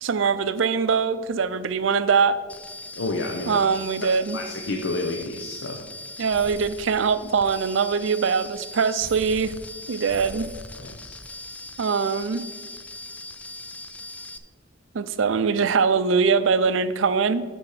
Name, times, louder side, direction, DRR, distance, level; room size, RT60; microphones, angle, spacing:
voice 1, 0.0-2.4 3.5-4.4 6.2-9.5 9.9-10.5 11.8-12.5 14.9-17.4, right 5 dB, 90° right, 13 dB, 0.5 m, -22 dB
sound 1, 2.5-14.4, left 2 dB, 5° left, 0.3 m, -40 dB
voice 2, 2.9-3.6 4.0-5.8 10.1-10.2 10.8-11.2, left 2 dB, 75° left, 2 dB, 0.8 m, -31 dB
12.0 x 4.3 x 4.9 m, 1.5 s
head